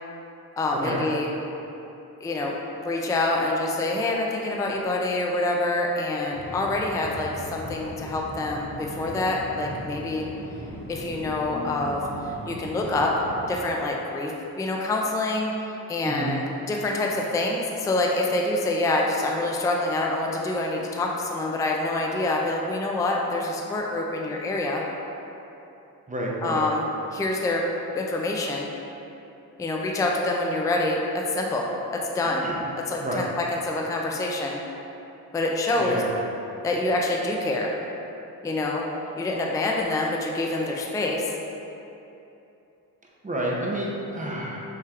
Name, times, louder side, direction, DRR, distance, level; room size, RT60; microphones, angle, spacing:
voice 1, 0.6-1.3 2.2-2.5 2.8-10.2 10.9-12.0 12.5-13.1 13.5-24.8 26.4-26.9 27.1-27.6 27.9-28.7 29.6-31.0 31.3-31.7 32.1-32.5 32.9-34.6 35.3-36.0 36.6-37.7 38.4-38.9 39.2-41.2, left 2 dB, 10° left, -1 dB, 0.3 m, -26 dB
sound 1, 6.3-13.5, equal, 85° left, 1.1 m, -39 dB
voice 2, 16.0-16.4 26.1-26.6 32.4-32.6 33.0-33.2 35.8-36.1 43.2-44.6, right 1 dB, 20° right, -3 dB, 0.6 m, -29 dB
5.6 x 3.2 x 2.4 m, 2.9 s
cardioid pair, 90°, 37 cm